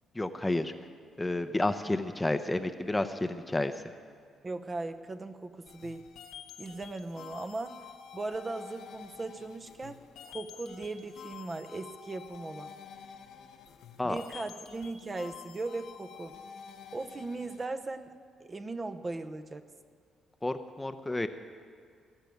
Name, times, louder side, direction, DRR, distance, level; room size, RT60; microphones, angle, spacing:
voice 1, 0.1-0.7 1.2-3.7 14.0-14.2 20.4-21.3, left 2 dB, 15° left, 9 dB, 0.7 m, -30 dB
voice 2, 4.4-6.0 6.6-7.8 8.1-10.0 10.2-12.7 14.0-16.3 16.9-18.1 18.4-19.6, right 3 dB, 30° right, 8 dB, 0.8 m, -38 dB
sound 1, 5.7-17.7, left 7 dB, 80° left, 1.0 m, -49 dB
18.5 x 6.8 x 9.2 m, 2.1 s
cardioid pair, 90°, 0 cm